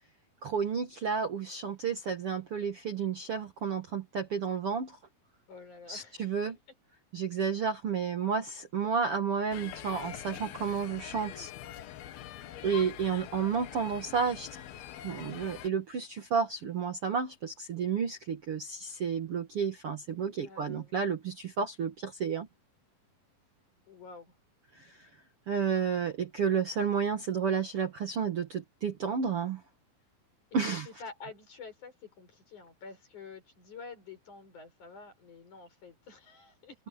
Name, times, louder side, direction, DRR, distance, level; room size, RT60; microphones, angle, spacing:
voice 1, 0.4-5.0 5.9-6.6 7.1-11.5 12.6-14.6 15.0-22.5 24.8-25.0 25.5-29.6 30.5-30.9, right 6 dB, 50° right, 1.9 m, -31 dB
voice 2, 5.5-6.4 20.4-21.0 23.9-24.4 30.6-36.9, left 4 dB, 50° left, 7.0 m, -49 dB
sound 1, 9.5-15.7, left 11 dB, 80° left, 3.3 m, -44 dB
omnidirectional pair, 4.4 m